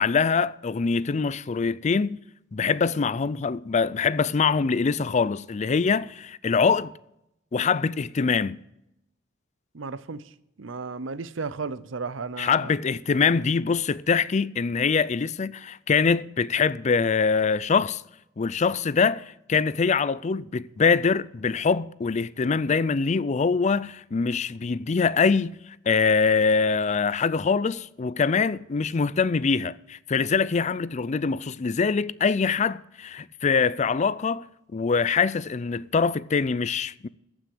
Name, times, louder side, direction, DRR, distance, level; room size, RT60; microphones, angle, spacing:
voice 1, 0.0-2.2 2.5-6.9 7.5-8.6 12.4-18.0 18.4-25.6 25.9-34.4 34.7-37.1, left 5 dB, 40° left, 0.4 m, -24 dB
voice 2, 9.7-10.3 10.6-12.7, right 4 dB, 90° right, 0.7 m, -34 dB
14.5 x 6.3 x 8.3 m
head